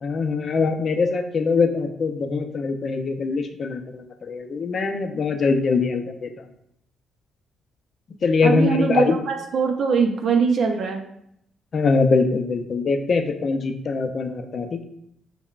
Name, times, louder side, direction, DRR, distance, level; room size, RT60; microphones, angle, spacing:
voice 1, 0.0-6.3 8.2-9.2 11.7-14.8, left 4 dB, 50° left, 6 dB, 0.4 m, -23 dB
voice 2, 8.4-11.0, right 5 dB, 60° right, 4 dB, 0.4 m, -22 dB
5.4 x 2.1 x 2.3 m, 0.75 s
cardioid pair, 90°, 0 cm